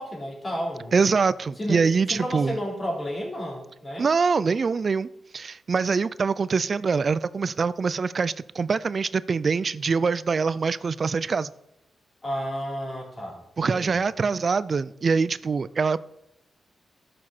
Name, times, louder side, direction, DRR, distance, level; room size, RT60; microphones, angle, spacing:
voice 1, 0.0-1.0 1.6-1.8 2.1-4.1 12.2-13.4 13.7-14.0, equal, 30° left, 4.1 m, -31 dB
voice 2, 0.9-2.6 4.0-11.5 13.6-16.0, right 5 dB, 55° right, 0.4 m, -24 dB
13.0 x 6.0 x 4.4 m
cardioid pair, 60°, 0 cm